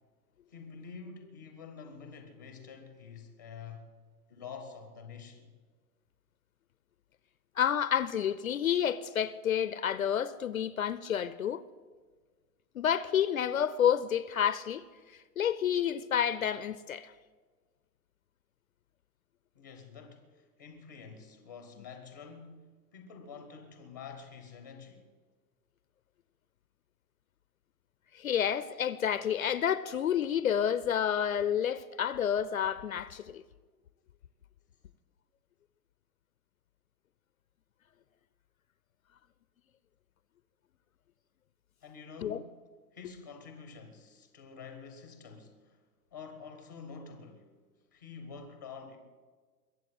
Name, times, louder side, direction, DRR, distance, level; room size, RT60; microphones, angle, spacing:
voice 1, 0.5-3.9 4.3-5.5 19.5-25.0 41.8-42.5 42.9-45.8 46.1-47.5 47.9-49.0, left 5 dB, 10° left, 0.6 m, -48 dB
voice 2, 7.6-11.6 12.7-14.9 15.4-17.1 28.1-33.4 42.2-42.4, left 9 dB, 55° left, 0.6 m, -29 dB
22.0 x 8.1 x 7.8 m
hypercardioid pair, 175°, 50 cm